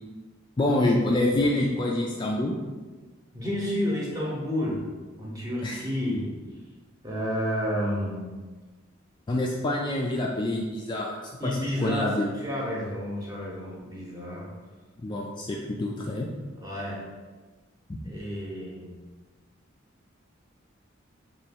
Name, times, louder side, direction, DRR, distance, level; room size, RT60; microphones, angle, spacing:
voice 1, 0.6-2.6 5.6-5.8 9.3-11.2 11.4-12.3 15.0-16.3 17.9-18.0, left 1 dB, 25° left, -2 dB, 0.3 m, -26 dB
voice 2, 3.3-4.9 5.2-6.3 7.0-8.4 11.4-14.5 16.6-17.1 18.0-18.9, left 1 dB, 20° right, -4 dB, 0.9 m, -30 dB
3.1 x 2.9 x 4.4 m, 1.3 s
head